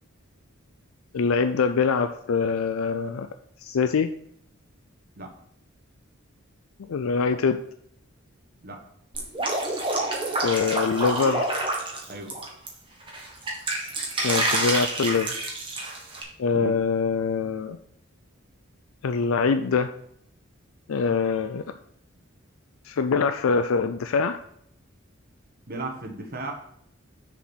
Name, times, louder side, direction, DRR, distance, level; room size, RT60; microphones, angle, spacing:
voice 1, 1.1-3.3 3.6-4.1 6.9-7.6 10.4-11.5 14.2-15.3 16.4-17.8 19.0-19.9 20.9-21.6 22.9-24.4, left 5 dB, 85° left, 9 dB, 0.4 m, -24 dB
Drip, 9.1-12.7 13.1-16.2, right 2 dB, 25° right, 1.6 m, -28 dB
voice 2, 12.1-12.4 16.5-16.8 25.7-26.5, right 2 dB, 45° right, 2 dB, 1.5 m, -35 dB
6.7 x 5.0 x 6.2 m, 0.70 s
head